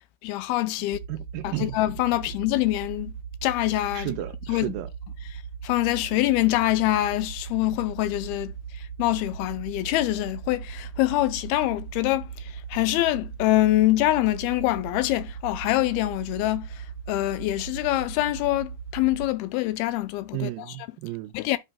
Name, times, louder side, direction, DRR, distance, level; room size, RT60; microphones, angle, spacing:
voice 1, 0.2-1.0 1.4-3.1 3.4-4.1 4.5-4.8 5.3-20.9 21.3-21.6, left 16 dB, 85° left, 2.5 m, -25 dB
sound 1, 0.9-19.3, right 6 dB, 65° right, 2.1 m, -38 dB
voice 2, 1.1-1.7 3.9-4.9 20.3-21.3, right 15 dB, 80° right, 2.1 m, -33 dB
11.0 x 5.2 x 2.2 m
omnidirectional pair, 4.5 m